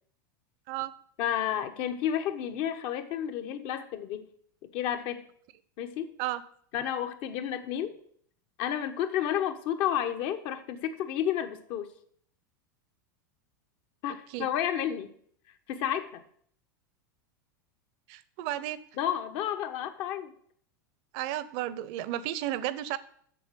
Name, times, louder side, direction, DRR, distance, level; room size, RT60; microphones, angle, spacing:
voice 1, 1.2-4.2 4.7-5.2 5.8-6.1 6.7-7.9 8.6-11.9 14.0-15.1 15.7-16.2 19.0-20.3, left 10 dB, 55° left, 8 dB, 1.3 m, -31 dB
voice 2, 18.1-18.8 21.1-23.0, right 13 dB, 55° right, 16 dB, 0.8 m, -33 dB
7.7 x 6.8 x 7.6 m, 0.62 s
hypercardioid pair, 100°, 11 cm